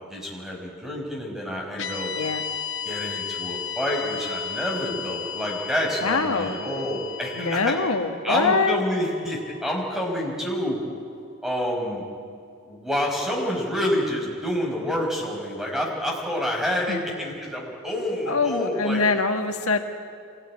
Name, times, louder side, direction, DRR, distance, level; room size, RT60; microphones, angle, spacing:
voice 1, 0.0-2.1 2.8-7.8 8.2-10.8 11.4-12.0 12.7-19.0, equal, ahead, -2 dB, 5.5 m, -28 dB
sound 1, 1.8-10.1, left 7 dB, 60° left, 1.6 m, -35 dB
voice 2, 6.0-6.6 7.3-8.8 16.9-17.2 18.3-19.8, left 4 dB, 80° left, 5 dB, 1.7 m, -24 dB
25.0 x 19.0 x 10.0 m, 2.4 s
head